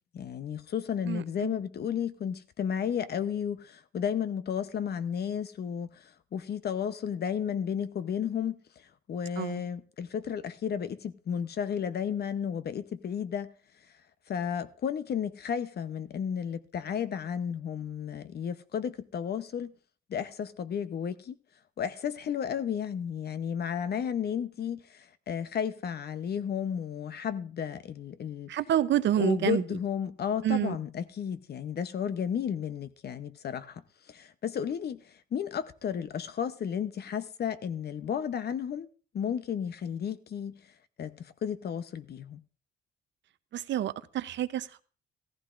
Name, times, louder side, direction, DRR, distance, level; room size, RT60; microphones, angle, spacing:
voice 1, 0.1-8.6 9.1-13.5 14.3-19.8 20.1-21.3 21.8-28.5 29.2-35.0 35.3-38.9 39.1-40.6 41.0-42.4, left 8 dB, 55° left, 0.8 m, -33 dB
voice 2, 1.1-1.6 9.4-9.6 28.5-29.6 30.4-30.8 43.5-44.8, right 11 dB, 65° right, 0.7 m, -28 dB
16.0 x 14.5 x 2.5 m
cardioid pair, 90°, 20 cm